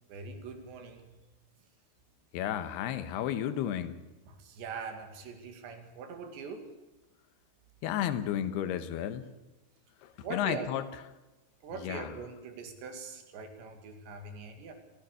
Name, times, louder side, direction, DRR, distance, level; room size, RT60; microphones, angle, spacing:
voice 1, 0.1-1.2 4.2-6.7 10.2-10.7 11.6-14.7, right 5 dB, 75° right, 5 dB, 4.5 m, -42 dB
voice 2, 2.3-4.0 7.8-9.3 10.3-10.8 11.8-12.1, left 10 dB, 75° left, 11 dB, 2.9 m, -32 dB
28.5 x 15.0 x 6.8 m, 1.1 s
omnidirectional pair, 5.2 m